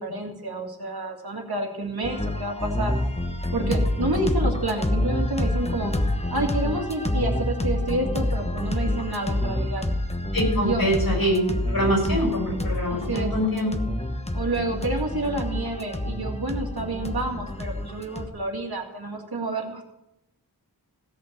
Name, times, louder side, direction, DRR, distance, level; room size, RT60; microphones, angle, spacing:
voice 1, 0.0-2.9 3.5-5.9 6.3-9.9 10.5-10.8 12.9-13.3 14.3-19.8, right 2 dB, 75° right, 1 dB, 2.2 m, -29 dB
sound 1, 2.0-18.3, left 1 dB, 15° left, 1.2 m, -27 dB
voice 2, 10.3-11.4 11.7-13.7, equal, 70° left, 0 dB, 6.1 m, -24 dB
17.0 x 5.6 x 7.4 m, 0.87 s
wide cardioid pair, 60°, 37 cm